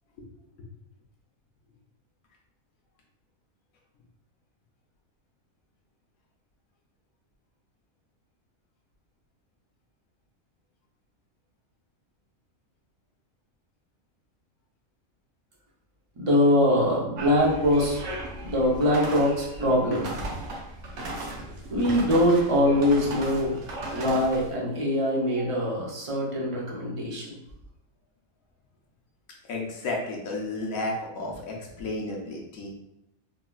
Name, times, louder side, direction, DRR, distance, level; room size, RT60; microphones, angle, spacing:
voice 1, 16.2-20.4 21.7-23.6 23.9-27.4, left 1 dB, 35° right, -4 dB, 0.5 m, -23 dB
sound 1, 17.2-24.5, right 2 dB, 70° right, 1.0 m, -37 dB
voice 2, 29.5-32.8, left 2 dB, 85° left, -1 dB, 1.1 m, -32 dB
3.8 x 2.3 x 2.2 m, 0.85 s
omnidirectional pair, 1.4 m